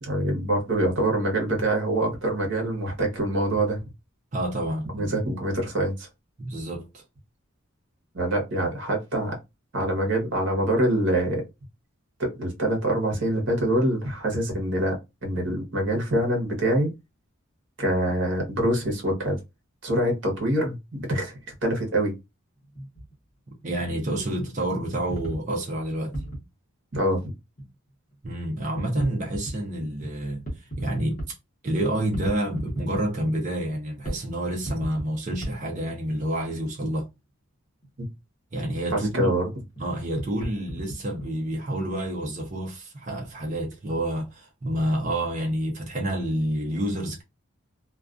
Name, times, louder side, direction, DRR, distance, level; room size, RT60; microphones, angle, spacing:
voice 1, 0.0-3.8 4.9-6.1 8.1-9.3 9.7-11.4 12.2-14.9 15.2-16.9 17.8-19.4 19.8-22.1 26.9-27.2 38.9-39.4, right 1 dB, 55° right, 0.9 m, -25 dB
voice 2, 4.3-5.1 6.4-7.0 23.6-26.1 28.2-31.4 31.6-37.1 38.5-39.3 39.8-47.2, right 1 dB, 35° right, 0.5 m, -28 dB
sound 1, 22.6-23.1 23.6-23.7 24.4-24.5 25.1-26.4 27.6-27.7 28.1-28.2 28.8-29.5 30.3-31.3 31.8-33.1 33.7-33.8 34.0-34.2 34.5-35.6 35.9-36.0 37.8-38.1 39.8-39.9 40.1-41.3, right 1 dB, 40° left, 0.9 m, -34 dB
2.3 x 2.3 x 2.4 m
head